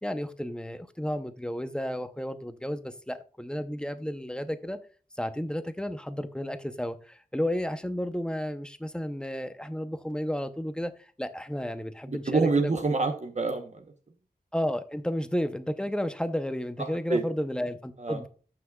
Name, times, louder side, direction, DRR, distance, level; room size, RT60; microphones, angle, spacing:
voice 1, 0.0-4.8 5.2-12.7 14.5-18.3, equal, 5° left, 0.7 m, -32 dB
voice 2, 12.1-13.8 17.1-17.2 18.0-18.2, right 3 dB, 45° right, 0.9 m, -26 dB
14.0 x 5.8 x 2.3 m
wide cardioid pair, 90°, 17 cm